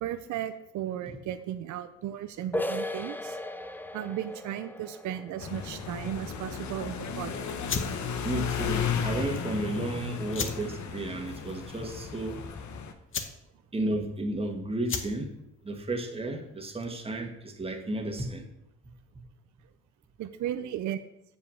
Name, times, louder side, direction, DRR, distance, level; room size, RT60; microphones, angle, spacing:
voice 1, 0.0-3.4 3.9-7.6 20.2-21.0, right 11 dB, 70° right, 10 dB, 0.6 m, -35 dB
sound 1, 2.5-8.0, left 1 dB, 5° left, 0.5 m, -38 dB
sound 2, 5.4-12.9, left 7 dB, 70° left, 1.1 m, -34 dB
sound 3, 7.6-17.1, left 5 dB, 45° left, 1.1 m, -39 dB
voice 2, 8.2-12.5 13.7-15.3 15.6-18.4, right 1 dB, 20° right, 3 dB, 1.5 m, -33 dB
7.3 x 5.2 x 7.1 m, 0.83 s
cardioid pair, 90°, 30 cm